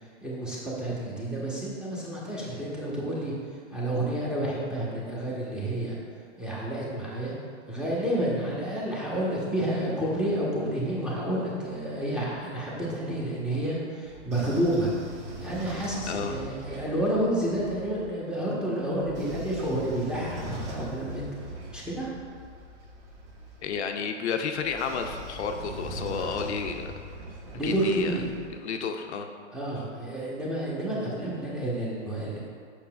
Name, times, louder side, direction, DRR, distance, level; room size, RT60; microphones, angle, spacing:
voice 1, 0.0-3.3 3.7-6.0 6.4-7.3 7.7-14.9 15.4-21.3 21.7-22.1 27.5-28.2 29.5-32.4, right 1 dB, ahead, -6 dB, 1.0 m, -30 dB
Train / Sliding door, 14.0-18.1 18.9-23.8 24.6-28.5, right 1 dB, 70° right, 1.2 m, -41 dB
voice 2, 23.6-26.9 27.6-28.1 28.6-29.3, left 6 dB, 65° left, 5 dB, 0.6 m, -31 dB
7.1 x 6.0 x 2.3 m, 2.2 s
hypercardioid pair, 135°, 37 cm